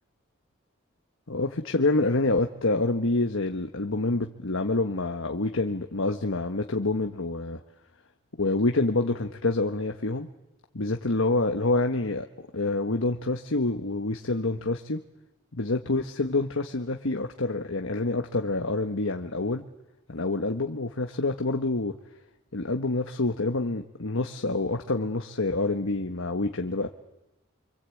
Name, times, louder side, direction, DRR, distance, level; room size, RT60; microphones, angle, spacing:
voice 1, 1.3-7.6 8.4-10.3 10.7-12.3 12.5-15.0 15.6-19.6 20.1-21.9 22.5-26.9, left 2 dB, 80° left, 5 dB, 1.3 m, -27 dB
27.0 x 25.5 x 8.5 m, 0.95 s
head